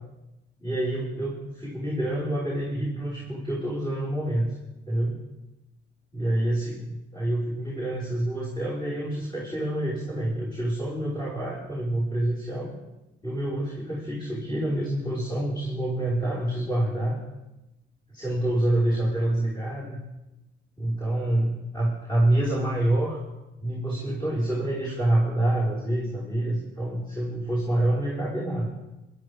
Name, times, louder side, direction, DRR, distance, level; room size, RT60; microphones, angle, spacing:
voice 1, 0.6-4.5 4.9-5.2 6.1-12.7 13.2-17.2 18.1-20.0 20.8-23.2 23.6-28.7, right 1 dB, 20° left, -7 dB, 5.9 m, -27 dB
22.5 x 12.5 x 3.9 m, 0.97 s
cardioid pair, 90°, 20 cm